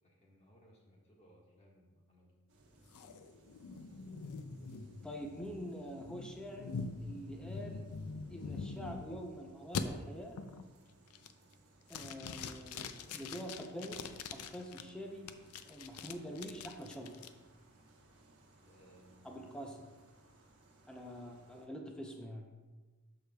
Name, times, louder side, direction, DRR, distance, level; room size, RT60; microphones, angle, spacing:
voice 1, 0.0-2.3 12.4-13.2 18.6-19.3, equal, 30° left, -3 dB, 1.6 m, -63 dB
sound 1, 2.5-21.7, right 2 dB, 80° right, 1.2 m, -64 dB
sound 2, 2.9-9.3 9.7-9.8 10.4-10.7 11.1-11.5 11.9-14.8 15.3-17.3, left 5 dB, 90° left, 0.4 m, -44 dB
voice 2, 5.0-6.7 7.0-7.9 8.3-10.4 11.9-12.8 13.1-15.4 15.6-17.2 19.2-19.9 20.9-22.6, equal, 5° left, 0 dB, 0.6 m, -45 dB
13.0 x 4.8 x 2.3 m, 1.3 s
head